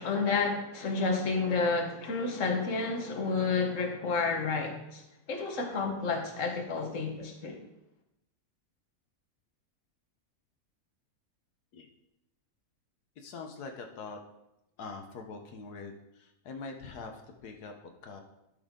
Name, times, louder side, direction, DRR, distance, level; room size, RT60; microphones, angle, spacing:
voice 1, 0.0-5.0 5.3-7.6, left 4 dB, 55° left, 2 dB, 1.6 m, -30 dB
voice 2, 13.2-14.2 14.8-17.7 18.0-18.2, left 4 dB, 85° left, 3 dB, 1.5 m, -43 dB
12.0 x 6.9 x 3.7 m, 0.87 s
omnidirectional pair, 1.6 m